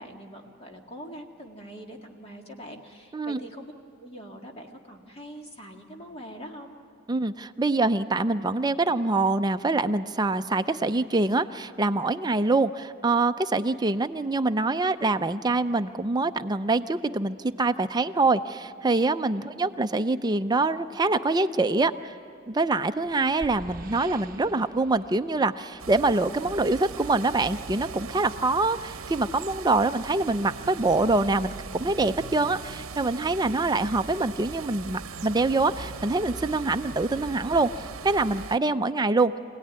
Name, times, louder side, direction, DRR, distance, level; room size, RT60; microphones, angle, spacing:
voice 1, 0.0-3.7 4.0-6.8 19.3-19.8, equal, 30° left, 2 dB, 2.0 m, -43 dB
voice 2, 7.1-22.1 22.5-37.7 38.0-39.4, right 3 dB, 20° right, 9 dB, 0.5 m, -25 dB
sound 1, 22.6-26.2, right 2 dB, 45° right, 0.9 m, -46 dB
sound 2, 25.8-38.6, right 5 dB, 80° right, 0.8 m, -40 dB
26.0 x 17.5 x 9.6 m, 2.4 s
head